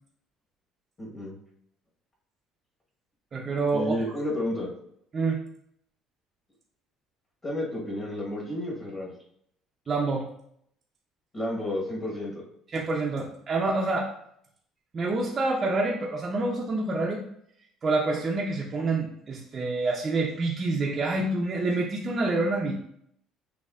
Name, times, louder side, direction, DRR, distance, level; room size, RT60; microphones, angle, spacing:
voice 1, 1.0-1.3 3.7-4.7 7.4-9.1 11.3-12.5, left 1 dB, 20° left, -4 dB, 1.1 m, -31 dB
voice 2, 3.3-4.0 5.1-5.4 9.9-10.3 12.7-14.1 14.9-17.2 17.8-22.8, right 3 dB, 25° right, -2 dB, 0.4 m, -27 dB
6.4 x 2.6 x 2.4 m, 0.71 s
cardioid pair, 160°, 0 cm